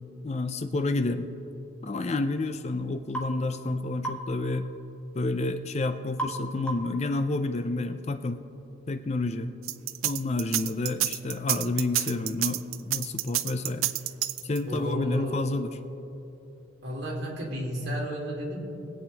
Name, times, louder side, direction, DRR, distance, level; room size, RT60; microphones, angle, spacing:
voice 1, 0.2-1.3 1.8-4.7 5.1-8.4 8.9-9.6 10.0-13.9 14.4-15.8, left 2 dB, 35° left, 9 dB, 0.4 m, -29 dB
sound 1, 3.1-3.3 4.0-4.3 6.2-6.4 6.7-7.0, right 2 dB, 5° left, 1.0 m, -33 dB
sound 2, 9.6-14.8, right 15 dB, 90° right, 0.4 m, -28 dB
voice 2, 14.7-15.4 16.8-18.6, equal, 55° right, -3 dB, 2.6 m, -32 dB
23.0 x 8.7 x 3.4 m, 3.0 s
head